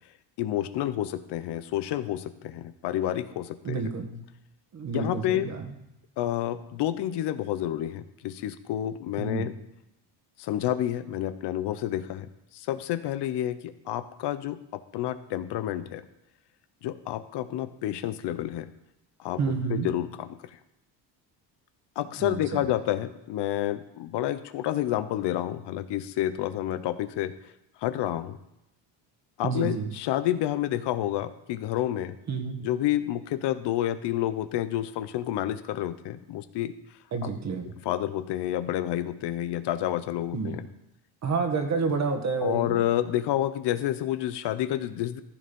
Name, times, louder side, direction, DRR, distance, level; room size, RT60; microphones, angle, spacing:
voice 1, 0.4-3.8 4.9-5.5 6.2-9.5 10.4-12.3 12.5-14.6 14.9-16.0 16.8-18.7 19.2-19.4 19.7-20.4 22.0-27.3 27.8-28.4 29.4-32.1 32.6-36.7 37.2-37.3 37.8-40.7 42.4-45.2, left 12 dB, 65° left, 12 dB, 0.8 m, -29 dB
voice 2, 3.6-4.2 4.7-5.7 9.2-9.5 19.4-19.9 22.2-22.7 29.4-29.9 32.3-32.6 37.1-37.7 40.3-40.6 41.2-42.9, right 4 dB, 35° right, 5 dB, 1.8 m, -29 dB
15.0 x 6.7 x 5.3 m, 0.87 s
cardioid pair, 135°, 45 cm